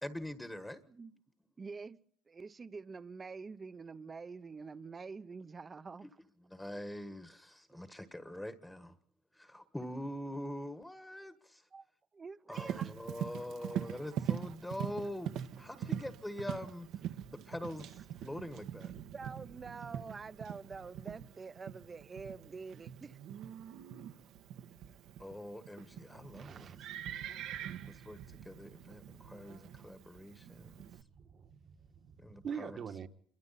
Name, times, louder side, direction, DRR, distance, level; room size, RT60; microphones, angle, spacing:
voice 1, 0.0-0.8 6.0-6.1 6.5-9.0 9.3-11.7 12.5-16.9 17.3-18.9 19.9-20.0 25.2-26.7 27.9-30.8 32.2-32.8, left 1 dB, 5° left, 1.5 m, -44 dB
voice 2, 1.6-2.0 2.3-6.1 7.7-7.8 11.7-11.9 12.1-12.9 19.1-23.2, right 4 dB, 25° right, 1.0 m, -46 dB
Livestock farm animals working animals, 12.5-31.0, right 10 dB, 60° right, 1.5 m, -43 dB
voice 3, 26.3-26.9 27.7-28.0 31.2-33.1, right 7 dB, 40° right, 1.7 m, -45 dB
27.5 x 23.5 x 4.2 m
cardioid pair, 115°, 0 cm